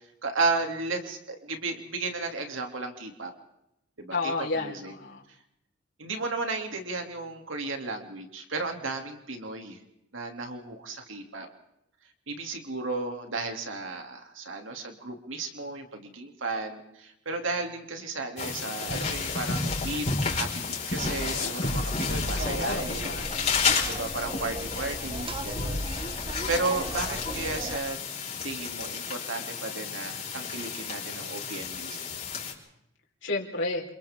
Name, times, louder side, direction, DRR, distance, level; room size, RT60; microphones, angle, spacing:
voice 1, 0.2-3.3 4.0-4.9 6.0-9.8 10.1-11.5 12.3-23.1 23.9-28.0 28.4-32.1, right 3 dB, 85° right, 3 dB, 2.9 m, -34 dB
voice 2, 4.1-5.2 22.4-23.8 33.2-33.8, left 3 dB, 75° left, -1 dB, 4.6 m, -32 dB
sound 1, 18.4-32.5, left 4 dB, 35° left, 5.2 m, -31 dB
sound 2, 22.2-27.8, right 2 dB, 25° right, 1.0 m, -37 dB
28.5 x 28.5 x 3.8 m, 0.82 s
head